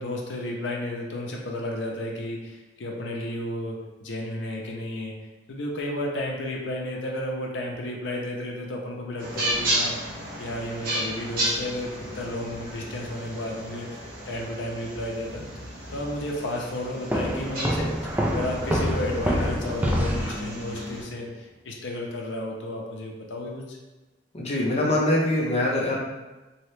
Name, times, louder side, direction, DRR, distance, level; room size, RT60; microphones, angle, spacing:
voice 1, 0.0-5.1 5.5-10.1 10.4-14.0 14.3-15.4 15.9-23.8, left 1 dB, 80° left, -1 dB, 0.5 m, -32 dB
sound 1, 9.2-21.0, right 1 dB, 55° right, 1.0 m, -33 dB
sound 2, 17.1-20.8, equal, 10° right, 0.3 m, -26 dB
voice 2, 24.3-26.0, left 1 dB, 35° left, -3 dB, 0.7 m, -23 dB
2.9 x 2.7 x 3.1 m, 1.1 s
head